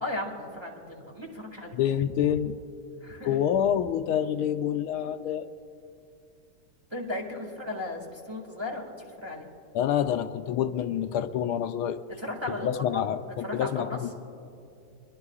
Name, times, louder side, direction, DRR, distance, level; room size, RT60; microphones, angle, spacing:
voice 1, 0.0-1.8 3.0-3.5 6.9-8.8 9.2-9.5 12.2-13.0 13.4-14.0, left 1 dB, 15° right, -1 dB, 1.7 m, -35 dB
voice 2, 1.7-2.6 3.2-5.5 9.7-12.0 12.6-14.1, left 9 dB, 80° left, 9 dB, 1.4 m, -27 dB
26.5 x 22.0 x 2.4 m, 2.6 s
omnidirectional pair, 2.4 m